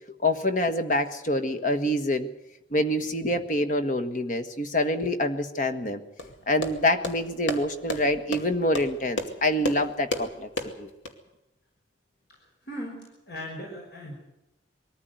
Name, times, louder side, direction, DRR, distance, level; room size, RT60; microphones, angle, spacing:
voice 1, 0.2-2.3 2.7-6.0 6.5-10.5 10.8-10.9, left 1 dB, 40° left, 7 dB, 1.4 m, -26 dB
sound 1, 6.2-11.1, left 1 dB, 80° left, 2.4 m, -34 dB
voice 2, 12.3-14.1, equal, 60° left, -2 dB, 5.6 m, -39 dB
22.0 x 14.5 x 9.3 m, 0.90 s
head